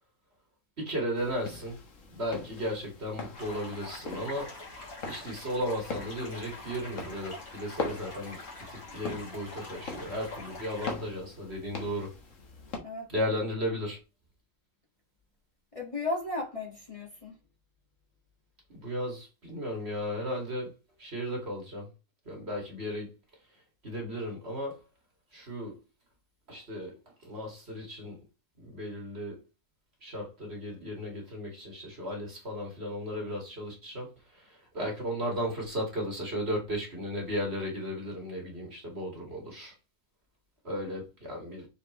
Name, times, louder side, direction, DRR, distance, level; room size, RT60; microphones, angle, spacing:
voice 1, 0.8-1.8 2.1-4.5 5.0-8.4 8.7-12.1 13.1-14.0 18.7-20.7 21.0-21.9 22.3-23.1 23.8-24.8 25.3-25.8 26.5-27.0 27.2-28.2 28.6-29.4 30.0-39.7 40.6-41.7, equal, 45° right, 2.7 m, -35 dB
sound 1, 1.2-12.8, left 3 dB, 65° left, 1.7 m, -42 dB
sound 2, 3.3-10.9, left 2 dB, 80° left, 2.9 m, -45 dB
voice 2, 12.8-13.3 15.7-17.4, left 2 dB, 25° left, 1.9 m, -35 dB
6.9 x 4.6 x 3.2 m
omnidirectional pair, 1.5 m